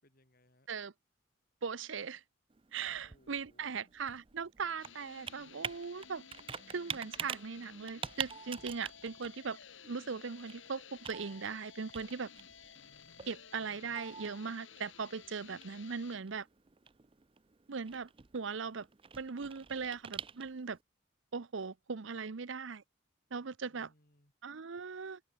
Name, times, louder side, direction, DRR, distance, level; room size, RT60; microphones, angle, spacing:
voice 1, 0.0-0.7 2.9-3.9 23.6-24.3, left 1 dB, 45° left, 6.8 m, -68 dB
voice 2, 1.6-2.2 2.7-6.2 6.7-9.6 9.8-12.3 13.2-16.5 17.7-18.9 19.2-20.8 21.3-22.8 23.3-23.9 24.4-25.2, right 5 dB, 70° right, 0.7 m, -39 dB
Computer keyboard, 2.5-20.8, right 7 dB, 25° right, 0.6 m, -47 dB
sound 1, 4.8-16.2, left 7 dB, 70° left, 2.7 m, -55 dB
head